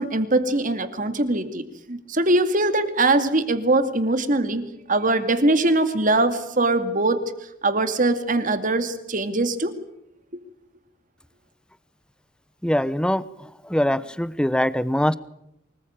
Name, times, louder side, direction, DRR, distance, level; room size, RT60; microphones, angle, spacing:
voice 1, 0.0-7.2 7.6-9.7, right 2 dB, 40° right, 9 dB, 2.4 m, -22 dB
voice 2, 12.6-15.2, equal, 5° left, 16 dB, 0.9 m, -23 dB
24.5 x 20.5 x 8.9 m, 0.78 s
head